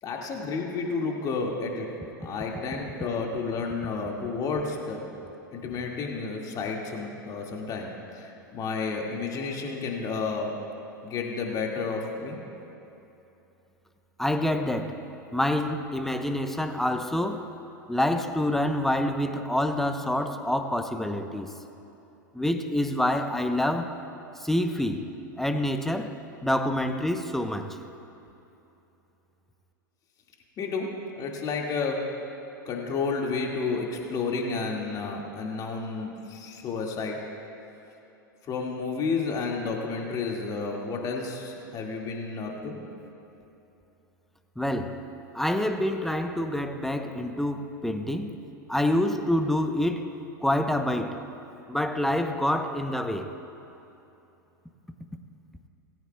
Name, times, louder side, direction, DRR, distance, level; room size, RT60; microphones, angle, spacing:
voice 1, 0.0-1.9 2.2-5.1 5.5-10.6 11.0-12.4 30.6-32.1 32.7-37.2 38.5-42.8, left 4 dB, 35° left, 0 dB, 2.1 m, -31 dB
voice 2, 14.2-15.0 15.3-17.5 17.9-21.5 22.3-23.9 24.4-25.1 25.4-26.1 26.4-27.8 44.6-45.0 45.3-48.3 48.7-50.1 50.4-51.2 51.7-53.3, left 1 dB, 5° left, 7 dB, 0.8 m, -27 dB
18.5 x 16.5 x 2.3 m, 2.9 s
hypercardioid pair, 95°, 11 cm